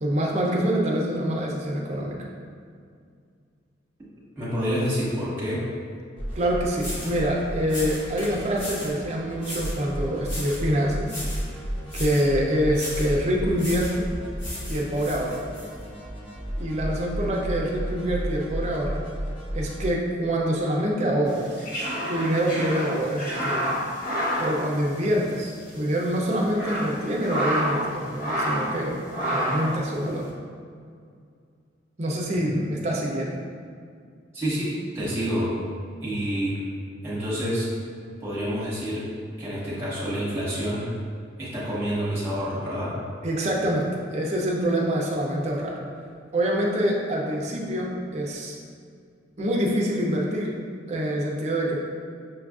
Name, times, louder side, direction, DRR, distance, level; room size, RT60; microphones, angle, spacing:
voice 1, 0.0-2.2 6.4-11.1 11.9-14.0 14.7-15.4 16.6-19.0 19.5-21.5 22.1-23.6 24.4-29.0 29.3-30.3 32.0-33.4 43.2-45.7 46.3-48.6 49.4-50.6 50.9-51.8, equal, 35° right, -2 dB, 0.5 m, -25 dB
voice 2, 4.4-5.7 32.3-32.5 34.3-35.5 36.0-36.6 37.0-37.7 38.2-39.0 39.4-40.9 41.4-42.9, equal, 15° right, -8 dB, 1.2 m, -28 dB
sound 1, 6.2-19.9, equal, 30° left, 0.9 m, -33 dB
sound 2, 6.3-6.4 6.8-7.2 7.7-9.0 9.4-9.8 10.2-10.7 11.0-11.5 11.9-12.3 12.7-13.1 13.6-14.0 14.4-15.7, left 1 dB, 85° left, 1.4 m, -37 dB
sound 3, 21.3-25.4 25.7-25.8 26.3-27.9 28.2-28.8 29.1-29.8, equal, 50° left, 1.1 m, -28 dB
6.0 x 2.4 x 2.4 m, 2.2 s
head